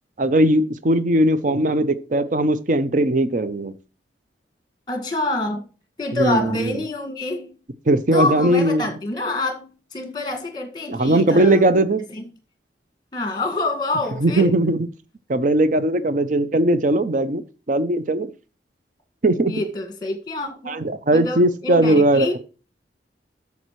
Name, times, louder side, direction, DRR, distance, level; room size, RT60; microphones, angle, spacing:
voice 1, 0.2-3.7 6.1-6.8 7.9-8.9 10.9-12.0 14.2-14.9 15.3-18.3 19.2-19.5 20.7-22.4, right 1 dB, 45° right, 0.6 m, -19 dB
voice 2, 4.9-5.6 6.0-7.6 8.1-11.7 12.1-12.2 13.1-14.5 19.5-20.8 21.1-22.4, left 2 dB, 25° left, 1.7 m, -26 dB
11.0 x 7.1 x 3.1 m
head